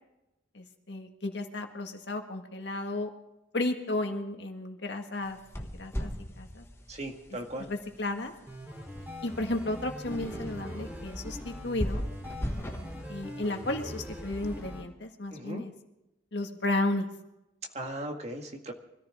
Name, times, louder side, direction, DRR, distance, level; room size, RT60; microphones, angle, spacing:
voice 1, 0.5-3.1 3.5-6.1 6.4-6.6 7.6-8.3 9.2-12.0 13.1-15.7 16.3-17.1, left 2 dB, 70° left, 4 dB, 1.8 m, -33 dB
sound 1, 5.2-14.6, equal, 15° left, 1.1 m, -40 dB
voice 2, 6.9-7.7 15.3-15.6 17.7-18.7, right 1 dB, 35° right, 3 dB, 1.9 m, -37 dB
sound 2, 8.5-14.8, equal, 10° right, 3.5 m, -41 dB
25.0 x 14.5 x 3.7 m, 0.93 s
head